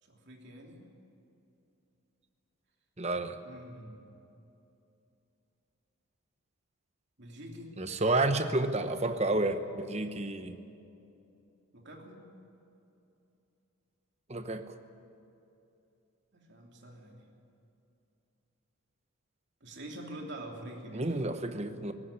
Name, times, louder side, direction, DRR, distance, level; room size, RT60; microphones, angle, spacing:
voice 1, 0.0-0.8 3.4-4.1 7.2-7.8 11.7-12.3 16.3-17.3 19.6-21.2 21.5-21.6, right 1 dB, 50° right, 1 dB, 2.9 m, -46 dB
voice 2, 3.0-3.4 7.8-10.6 14.3-14.7 20.9-21.9, right 2 dB, 30° right, 9 dB, 1.0 m, -30 dB
18.5 x 16.0 x 9.8 m, 2.8 s
head